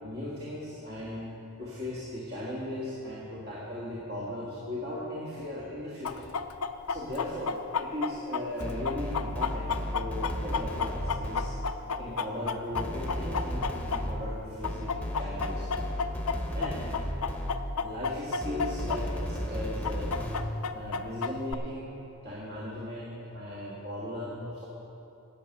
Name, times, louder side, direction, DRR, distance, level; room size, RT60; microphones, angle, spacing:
voice 1, 0.0-6.3 6.9-11.6 12.0-15.9 16.5-16.9 17.8-20.1 20.7-24.7, left 1 dB, 45° right, -6 dB, 1.8 m, -37 dB
Chicken rooster, 6.0-14.3 14.6-19.0 19.2-19.3 19.8-21.5, left 5 dB, 80° left, 0.5 m, -31 dB
sound 1, 8.6-11.9 12.7-17.9 18.4-20.6, equal, 5° left, 0.9 m, -35 dB
12.0 x 8.7 x 6.6 m, 2.9 s
head